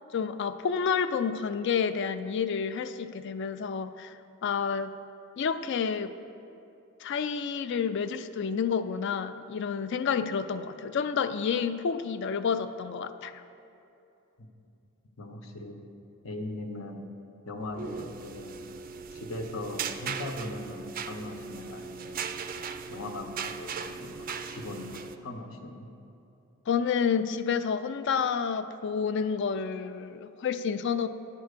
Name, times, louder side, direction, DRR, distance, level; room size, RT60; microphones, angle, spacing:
voice 1, 0.1-4.9 5.4-6.1 7.0-13.4 26.7-31.1, left 6 dB, 60° left, 12 dB, 0.4 m, -29 dB
voice 2, 15.2-15.8 16.2-17.1 17.5-18.5 19.1-22.2 22.9-25.9, left 2 dB, 80° left, 4 dB, 0.9 m, -39 dB
sound 1, 17.6-25.1, right 6 dB, 40° right, 0.3 m, -38 dB
10.0 x 4.5 x 6.6 m, 2.8 s
head